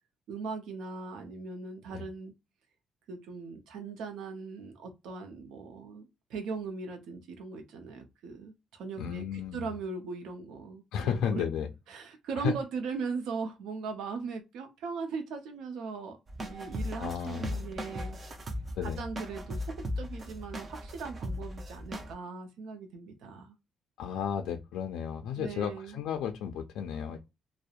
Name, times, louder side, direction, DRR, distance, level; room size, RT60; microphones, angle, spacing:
voice 1, 0.3-2.3 3.1-11.4 11.9-16.2 16.4-18.2 18.8-23.5 25.4-26.0, right 4 dB, 85° right, 0.5 m, -39 dB
voice 2, 9.0-9.7 10.9-11.7 12.4-12.5 17.0-17.6 18.8-19.0 24.0-27.2, left 8 dB, 90° left, 0.3 m, -33 dB
sound 1, 16.3-22.1, equal, 40° right, 0.6 m, -38 dB
2.7 x 2.0 x 2.3 m
cardioid pair, 90°, 0 cm